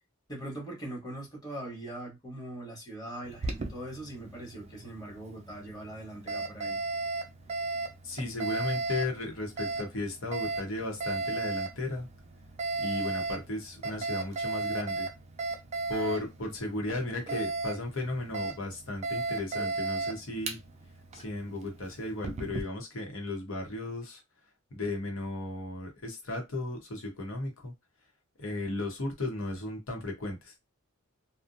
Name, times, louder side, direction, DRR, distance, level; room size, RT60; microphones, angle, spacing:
voice 1, 0.3-6.8, right 1 dB, 20° left, 1.1 m, -41 dB
Alarm, 3.2-22.6, right 3 dB, 30° right, 0.4 m, -36 dB
voice 2, 8.0-12.1 12.8-15.1 15.9-20.6 21.1-24.2 24.7-27.7 28.4-30.6, left 2 dB, 65° left, 0.8 m, -35 dB
2.5 x 2.1 x 2.6 m
head